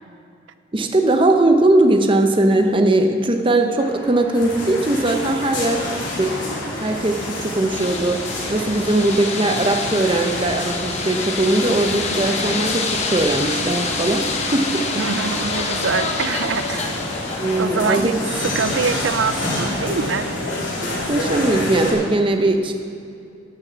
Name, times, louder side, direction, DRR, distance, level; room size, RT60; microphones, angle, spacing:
voice 1, 0.7-6.4 6.8-8.2 8.5-15.0 17.4-18.2 21.1-22.7, right 2 dB, 25° right, 5 dB, 0.7 m, -19 dB
sound 1, 3.8-18.2, equal, 15° left, 1.4 m, -38 dB
sound 2, 4.3-21.9, left 1 dB, 75° left, 3.3 m, -28 dB
sound 3, 7.7-17.6, left 4 dB, 35° left, 1.0 m, -27 dB
voice 2, 15.0-17.0 17.6-18.2 18.4-20.3, right 5 dB, 75° right, 13 dB, 0.5 m, -24 dB
11.5 x 6.7 x 7.4 m, 2.5 s
head